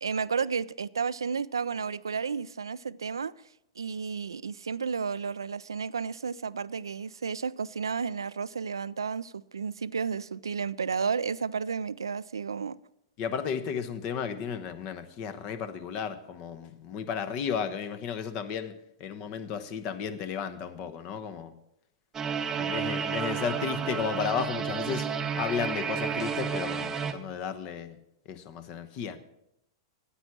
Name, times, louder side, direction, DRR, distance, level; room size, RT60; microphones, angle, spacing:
voice 1, 0.0-3.3 3.8-12.8, right 6 dB, 85° right, 0.3 m, -32 dB
voice 2, 13.2-18.7 19.0-21.5 22.6-25.1 25.4-28.0 28.3-29.2, left 7 dB, 40° left, 1.0 m, -33 dB
sound 1, 22.1-27.1, right 6 dB, 20° right, 0.8 m, -31 dB
10.0 x 8.5 x 6.0 m
hypercardioid pair, 105°, 2 cm